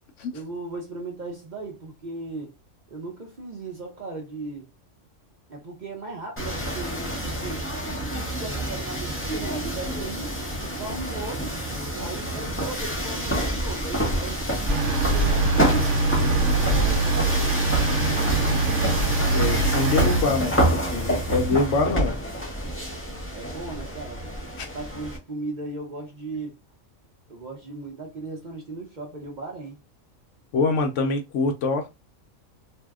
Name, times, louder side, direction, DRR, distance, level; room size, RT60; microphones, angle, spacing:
voice 1, 0.3-2.5 2.9-4.7 5.5-7.7 8.1-10.3 10.6-11.5 12.0-16.0 16.3-19.0 23.3-24.3 24.6-26.6 27.3-29.8, right 3 dB, 40° right, 0.7 m, -37 dB
sound 1, 6.4-25.2, equal, 10° left, 0.7 m, -27 dB
sound 2, 14.7-20.2, right 3 dB, 65° right, 0.9 m, -23 dB
voice 2, 19.3-22.1 24.6-24.7 30.5-31.9, left 3 dB, 70° left, 0.9 m, -25 dB
2.7 x 2.1 x 3.5 m
omnidirectional pair, 1.4 m